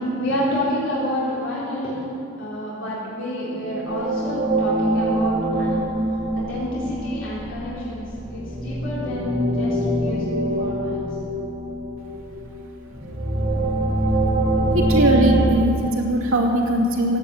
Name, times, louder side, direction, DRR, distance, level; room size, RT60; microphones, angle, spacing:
voice 1, 0.2-2.0 2.4-5.8 6.5-11.0, equal, 65° left, -8 dB, 3.8 m, -29 dB
sound 1, 3.5-15.5, right 1 dB, 40° right, 2.9 m, -24 dB
voice 2, 14.7-17.2, right 1 dB, 80° right, -1 dB, 2.6 m, -20 dB
16.0 x 10.0 x 8.0 m, 2.8 s
head